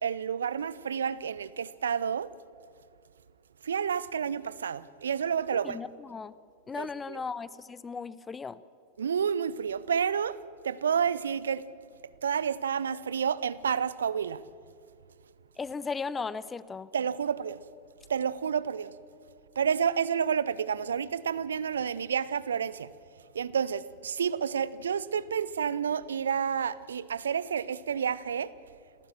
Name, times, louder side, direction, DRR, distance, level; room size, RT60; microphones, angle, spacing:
voice 1, 0.0-2.3 3.6-5.8 6.7-7.2 9.0-11.7 12.2-14.4 16.9-17.6 18.1-18.9 19.6-22.9 23.3-28.5, right 7 dB, 70° right, 0.6 m, -30 dB
voice 2, 5.6-6.3 6.7-8.6 15.6-16.9, left 5 dB, 15° left, 0.6 m, -36 dB
28.5 x 15.0 x 7.4 m
figure-of-eight pair, 90°, 0 cm